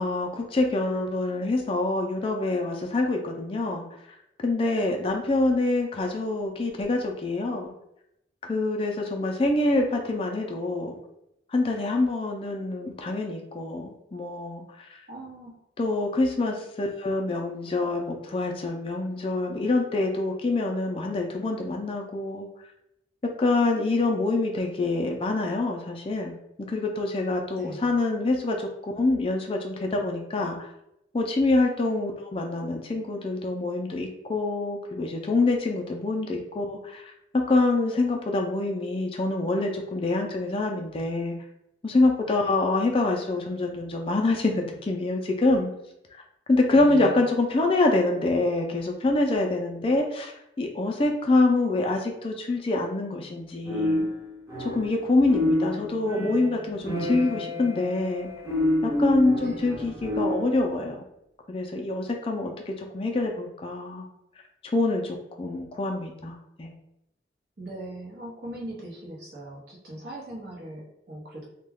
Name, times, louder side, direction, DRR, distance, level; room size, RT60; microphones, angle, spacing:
voice 1, 0.0-3.9 4.4-7.7 8.4-11.0 11.5-15.0 15.8-22.5 23.4-28.7 29.0-30.7 31.1-37.0 37.5-41.4 41.8-45.7 46.5-54.1 54.6-58.3 58.8-61.0 61.5-64.1 64.7-66.7, left 2 dB, 30° left, 2 dB, 0.3 m, -26 dB
voice 2, 15.1-15.6 27.6-27.9 46.7-47.2 59.4-59.6 67.6-71.5, right 1 dB, 65° right, -3 dB, 0.9 m, -40 dB
sound 1, 53.6-60.5, left 1 dB, 15° right, 0.9 m, -28 dB
2.2 x 2.2 x 3.4 m, 0.82 s
head